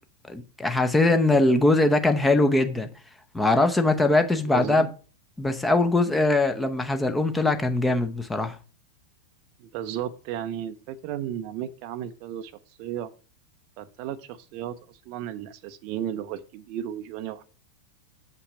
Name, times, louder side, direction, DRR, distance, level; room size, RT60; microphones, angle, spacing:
voice 1, 0.3-2.9 3.3-4.9 5.4-8.6, left 2 dB, 10° left, 0.8 m, -21 dB
voice 2, 4.5-4.9 9.6-12.5 12.8-13.1 13.8-17.4, right 10 dB, 45° right, 0.5 m, -34 dB
6.8 x 5.7 x 5.4 m
figure-of-eight pair, 90°, 0 cm